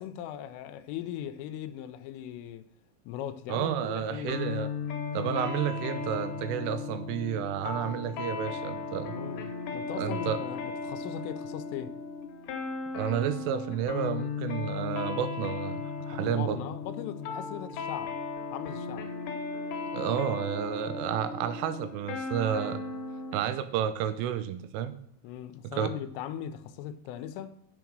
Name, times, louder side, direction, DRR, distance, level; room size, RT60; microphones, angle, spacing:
voice 1, 0.0-2.7 3.1-4.4 9.1-12.0 16.1-18.2 18.5-19.1 25.2-27.7, left 10 dB, 85° left, 3.3 m, -39 dB
voice 2, 3.5-4.7 5.1-9.1 10.0-10.4 12.9-16.6 19.9-22.8 23.3-24.9 25.6-25.9, right 9 dB, 90° right, 3.3 m, -31 dB
sound 1, 4.3-23.4, left 5 dB, 70° left, 3.3 m, -36 dB
8.1 x 7.2 x 6.3 m
omnidirectional pair, 5.8 m